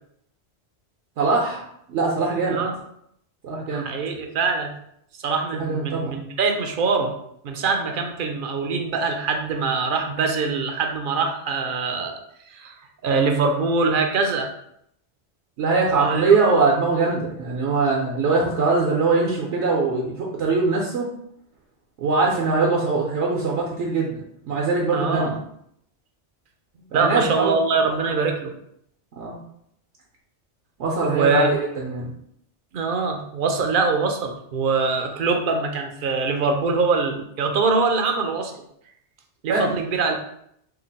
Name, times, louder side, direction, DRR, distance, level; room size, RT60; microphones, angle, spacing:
voice 1, 1.2-1.6 1.9-2.6 3.4-3.9 5.5-6.1 15.6-21.1 22.0-25.4 26.8-27.6 27.8-28.1 29.1-29.4 30.8-32.1 39.5-39.7, right 4 dB, 75° right, -2 dB, 0.9 m, -22 dB
voice 2, 3.7-4.7 5.2-7.1 7.4-12.2 12.5-12.8 13.0-14.5 15.9-16.2 24.9-25.3 26.9-28.5 31.1-31.5 32.7-38.5 39.4-40.2, right 4 dB, 60° right, 4 dB, 0.6 m, -23 dB
2.9 x 2.4 x 3.9 m, 0.72 s
omnidirectional pair, 1.2 m